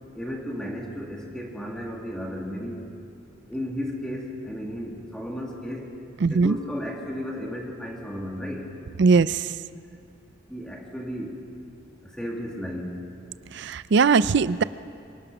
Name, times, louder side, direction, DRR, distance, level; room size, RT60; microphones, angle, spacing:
voice 1, 0.1-2.9 3.5-5.9 6.3-8.7 10.5-11.4 12.0-13.0, equal, 5° left, -1 dB, 1.9 m, -34 dB
voice 2, 6.2-6.6 9.0-9.6 13.5-14.6, right 4 dB, 60° right, 16 dB, 0.5 m, -20 dB
24.5 x 19.0 x 6.0 m, 2.5 s
head